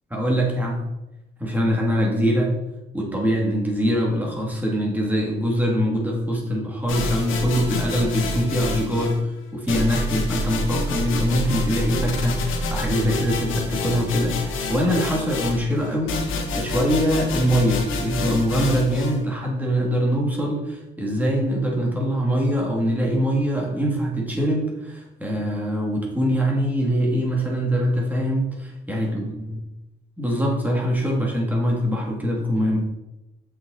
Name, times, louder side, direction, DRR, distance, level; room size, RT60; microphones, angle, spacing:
voice 1, 0.1-0.8 1.4-2.5 2.9-9.2 9.5-29.3 30.2-32.8, equal, 10° right, -2 dB, 2.8 m, -23 dB
sound 1, 6.9-9.2 9.7-19.2, left 2 dB, 85° left, 1.4 m, -28 dB
7.3 x 6.3 x 4.3 m, 0.94 s
cardioid pair, 90°, 20 cm